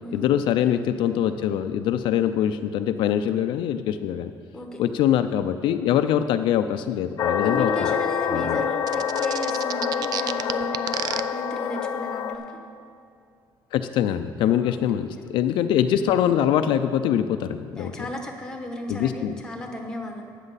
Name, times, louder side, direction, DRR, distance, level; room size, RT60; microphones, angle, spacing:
voice 1, 0.1-4.3 4.8-7.9 8.3-8.6 13.7-17.9 18.9-19.3, left 10 dB, 70° left, 8 dB, 0.4 m, -23 dB
sound 1, 7.2-12.3, left 8 dB, 45° left, 0.8 m, -26 dB
voice 2, 7.4-12.5 14.6-15.0 17.8-20.2, left 1 dB, 10° left, 3 dB, 1.1 m, -34 dB
sound 2, 8.9-11.2, right 10 dB, 50° right, 0.3 m, -30 dB
13.0 x 8.3 x 4.1 m, 2.5 s
cardioid pair, 160°, 9 cm